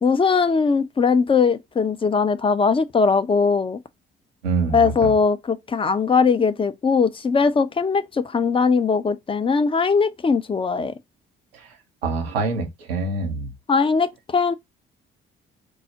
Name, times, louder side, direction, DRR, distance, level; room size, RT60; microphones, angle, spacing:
voice 1, 0.0-3.8 4.7-10.9 13.7-14.5, left 5 dB, 20° left, 0.5 m, -20 dB
voice 2, 4.4-5.1 11.5-11.7 12.0-13.5, right 4 dB, 85° right, 0.6 m, -25 dB
4.6 x 2.0 x 2.7 m
figure-of-eight pair, 45°, 29 cm